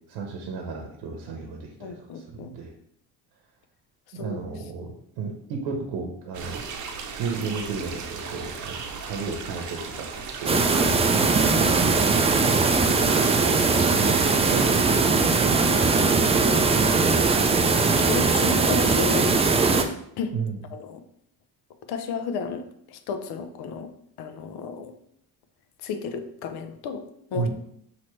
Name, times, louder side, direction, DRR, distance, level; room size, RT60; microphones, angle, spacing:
voice 1, 0.1-2.7 4.1-6.6 7.2-10.7 11.0-12.1 13.7-14.2 14.5-15.5 16.4-17.2 20.3-20.6 27.3-27.5, right 4 dB, 75° right, 2 dB, 0.9 m, -33 dB
voice 2, 1.8-2.6 4.1-4.4 13.8-14.0 16.0-16.1 17.6-20.4 20.7-21.0 21.8-23.9 24.2-25.0 25.8-27.5, left 5 dB, 75° left, 9 dB, 0.7 m, -33 dB
sound 1, 6.3-14.8, right 5 dB, 50° right, 0.8 m, -37 dB
sound 2, 10.5-19.8, right 4 dB, 15° right, 0.3 m, -20 dB
5.7 x 2.9 x 3.1 m, 0.70 s
cardioid pair, 95°, 40 cm